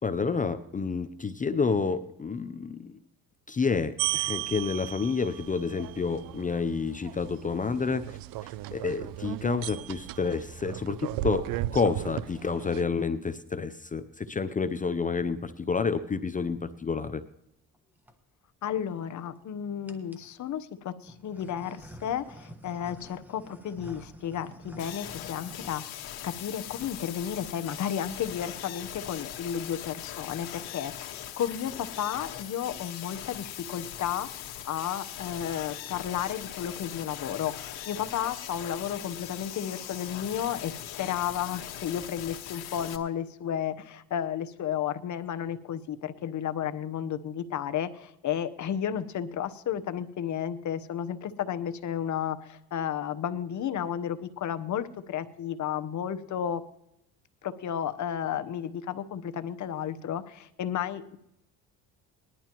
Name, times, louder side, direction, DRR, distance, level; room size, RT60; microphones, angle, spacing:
voice 1, 0.0-2.9 3.5-8.2 8.7-17.2, left 5 dB, 20° left, 11 dB, 0.5 m, -29 dB
sound 1, 4.0-12.8, right 15 dB, 65° right, 0.5 m, -36 dB
sound 2, 17.7-18.1 18.9-19.4 19.9-20.3 21.0-26.5 26.7-26.9 27.2-27.3 27.5-27.8 28.1-28.6, equal, 5° right, 1.3 m, -49 dB
voice 2, 18.6-56.6 57.4-61.2, left 9 dB, 50° left, 11 dB, 1.0 m, -33 dB
sound 3, 24.8-43.0, left 11 dB, 80° left, 1.5 m, -40 dB
20.0 x 11.0 x 3.0 m, 0.80 s
supercardioid pair, 85°, 37 cm